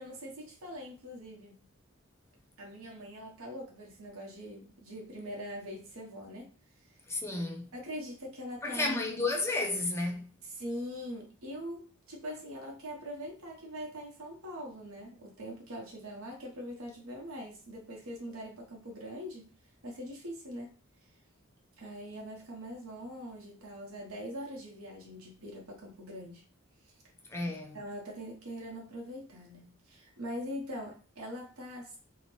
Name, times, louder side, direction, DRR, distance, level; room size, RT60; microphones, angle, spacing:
voice 1, 0.0-1.6 2.6-6.5 6.8-6.9 7.7-9.0 10.5-19.5 19.8-20.7 21.8-26.4 26.9-27.0 27.5-32.0, equal, 90° right, 0.9 m, -42 dB
voice 2, 7.1-7.7 8.6-10.3 27.3-27.8, left 2 dB, 10° left, 0.4 m, -32 dB
2.8 x 2.1 x 3.1 m
head